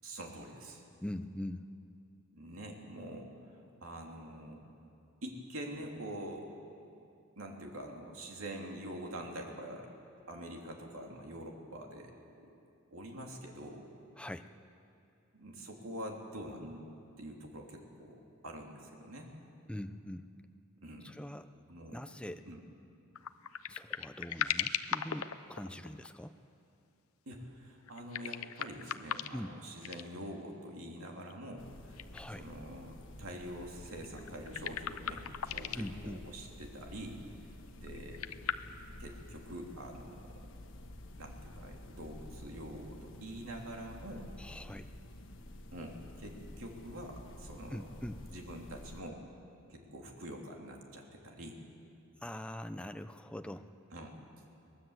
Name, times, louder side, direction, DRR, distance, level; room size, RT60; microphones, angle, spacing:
voice 1, 0.0-0.8 2.3-4.6 5.2-6.5 7.4-9.9 10.3-12.5 12.9-13.9 15.3-16.9 17.2-19.3 20.8-21.1 21.7-22.0 22.4-22.6 27.3-32.0 32.3-35.2 35.5-37.2 37.7-38.3 39.0-40.3 41.2-44.3 45.7-48.0 48.3-49.2 49.7-51.6 53.9-54.2, right 1 dB, 70° right, 1 dB, 3.0 m, -45 dB
voice 2, 1.0-1.6 14.2-14.5 19.7-20.3 21.0-21.5 21.9-22.4 23.7-26.4 29.3-29.5 32.1-32.5 35.8-36.2 44.4-44.9 47.7-48.2 52.2-53.7, left 1 dB, 5° left, 8 dB, 0.6 m, -42 dB
sound 1, 23.2-26.1 27.9-29.5 29.8-30.1 31.3-31.4 32.0-32.2 32.5-32.6 33.9-36.0 37.9-38.5, left 8 dB, 80° left, 0.7 m, -37 dB
sound 2, 31.6-49.0, left 1 dB, 65° left, 1.4 m, -50 dB
23.0 x 19.0 x 8.1 m, 2.6 s
head